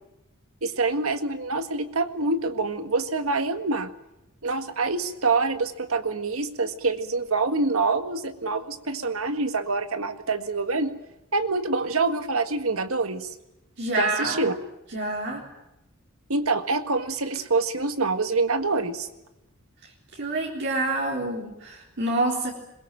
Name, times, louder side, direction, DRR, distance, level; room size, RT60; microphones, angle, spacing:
voice 1, 0.6-3.9 4.4-10.9 11.3-13.4 14.0-14.5 16.3-19.1, right 3 dB, 70° right, 9 dB, 1.8 m, -26 dB
voice 2, 13.8-14.5 14.9-15.4 20.1-22.5, right 2 dB, 55° right, -2 dB, 3.9 m, -27 dB
22.0 x 21.5 x 9.1 m, 0.91 s
head